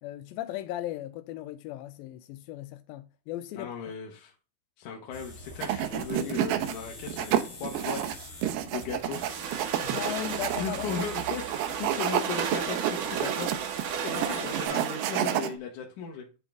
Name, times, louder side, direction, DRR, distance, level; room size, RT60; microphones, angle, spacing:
voice 1, 0.0-3.7 9.8-11.0 14.1-14.5, left 13 dB, 90° left, 2.3 m, -37 dB
voice 2, 3.6-4.3 4.8-9.2 10.4-13.6 14.0-16.3, left 6 dB, 65° left, 2.4 m, -37 dB
sound 1, 5.1-14.7, left 1 dB, 40° left, 0.9 m, -46 dB
sound 2, 5.6-6.7 7.1-15.5, right 11 dB, 85° right, 2.4 m, -30 dB
sound 3, 9.0-15.5, right 8 dB, 70° right, 1.5 m, -34 dB
10.0 x 3.7 x 3.5 m
omnidirectional pair, 4.1 m